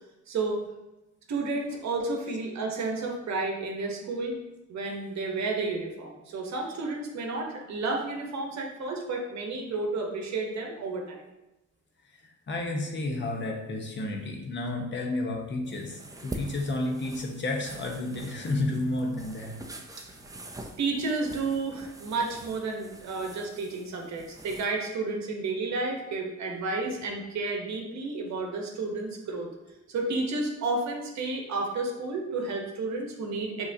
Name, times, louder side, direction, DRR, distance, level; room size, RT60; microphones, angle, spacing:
voice 1, 0.3-0.6 1.3-4.4 4.7-11.2 20.8-29.5 29.9-33.7, right 3 dB, 65° right, 1 dB, 1.0 m, -31 dB
voice 2, 12.5-19.5, left 2 dB, 40° left, 1 dB, 0.9 m, -31 dB
sound 1, 15.6-24.6, right 1 dB, 10° right, 0.5 m, -44 dB
6.0 x 3.0 x 2.7 m, 0.98 s
cardioid pair, 90°, 30 cm